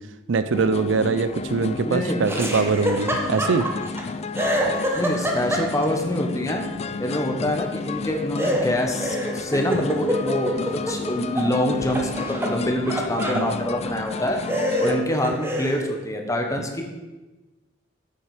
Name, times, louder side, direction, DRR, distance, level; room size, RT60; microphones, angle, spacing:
voice 1, 0.3-3.7 7.4-7.6 11.4-11.5 13.3-13.6, right 4 dB, 70° right, 12 dB, 0.5 m, -23 dB
sound 1, 0.5-15.0, left 4 dB, 35° left, 0.4 m, -32 dB
voice 2, 1.8-2.2 4.9-6.6 7.0-14.4 14.8-16.8, left 1 dB, 15° left, 3 dB, 1.1 m, -25 dB
Laughter, 2.2-4.0 4.3-6.0 8.4-11.5 11.8-13.5 14.1-14.2 14.5-15.8, equal, 15° right, 1.0 m, -26 dB
8.1 x 7.3 x 4.9 m, 1.1 s
head